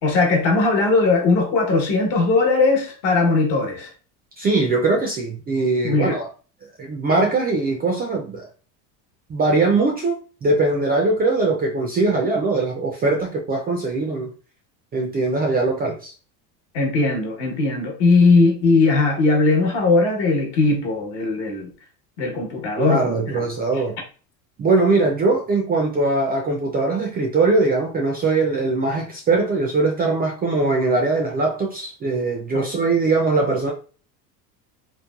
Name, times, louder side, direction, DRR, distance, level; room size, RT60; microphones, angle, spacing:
voice 1, 0.0-3.9 5.8-6.2 16.7-21.7 22.2-23.2 23.7-23.8 32.5-32.6, left 3 dB, 60° left, 1.1 m, -19 dB
voice 2, 4.4-6.3 6.8-8.4 9.3-14.3 14.9-16.1 22.8-24.0 24.6-33.7, right 3 dB, 20° right, 0.3 m, -21 dB
3.0 x 2.1 x 2.3 m
supercardioid pair, 95°, 47 cm